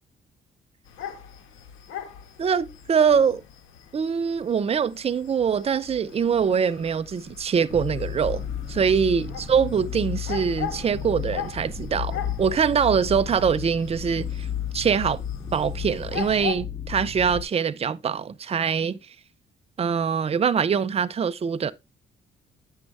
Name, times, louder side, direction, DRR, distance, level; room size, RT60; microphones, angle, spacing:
sound 1, 0.8-16.6, left 9 dB, 90° left, 1.4 m, -40 dB
voice 1, 2.4-3.4 3.9-8.4 8.7-14.5 14.7-15.2 15.5-19.2 19.8-21.7, right 6 dB, 30° right, 0.5 m, -23 dB
sound 2, 7.7-17.4, left 8 dB, 30° left, 2.6 m, -33 dB
8.5 x 6.4 x 3.3 m
cardioid pair, 90°, 20 cm